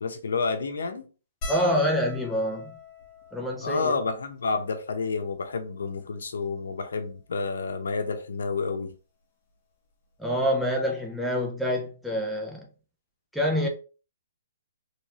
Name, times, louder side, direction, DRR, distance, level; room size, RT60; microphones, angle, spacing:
voice 1, 0.0-1.1 3.6-8.9, left 4 dB, 80° left, 0.7 m, -29 dB
sound 1, 1.4-6.0 6.8-6.9 7.1-7.3 8.5-8.7 10.2-10.3 10.5-10.7, left 1 dB, 25° left, 1.2 m, -43 dB
voice 2, 1.5-2.7 3.3-4.0 10.2-12.7 13.3-13.7, equal, ahead, 0.5 m, -26 dB
3.1 x 3.0 x 2.8 m
hypercardioid pair, 165°, 0 cm